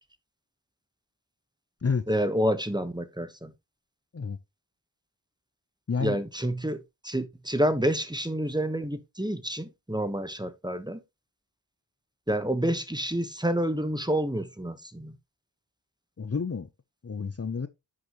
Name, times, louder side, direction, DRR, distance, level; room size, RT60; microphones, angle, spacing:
voice 1, 2.1-3.5 6.0-11.0 12.3-15.1, equal, 10° right, 1.1 m, -28 dB
voice 2, 16.2-16.7 17.0-17.7, left 5 dB, 35° left, 0.7 m, -29 dB
10.0 x 6.5 x 3.0 m
wide cardioid pair, 65°, 43 cm